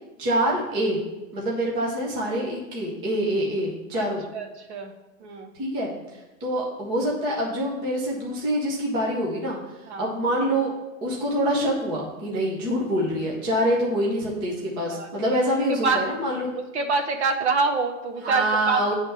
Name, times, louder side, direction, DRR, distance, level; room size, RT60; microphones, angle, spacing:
voice 1, 0.2-1.0 1.3-4.2 5.6-10.7 11.0-16.5 18.2-18.9, equal, 10° right, -4 dB, 0.7 m, -25 dB
voice 2, 4.0-4.9 5.2-5.5 9.9-10.1 14.9-15.1 15.8-16.0 16.7-18.9, right 4 dB, 55° right, 6 dB, 1.0 m, -26 dB
8.9 x 3.4 x 5.5 m, 1.1 s
supercardioid pair, 175°, 39 cm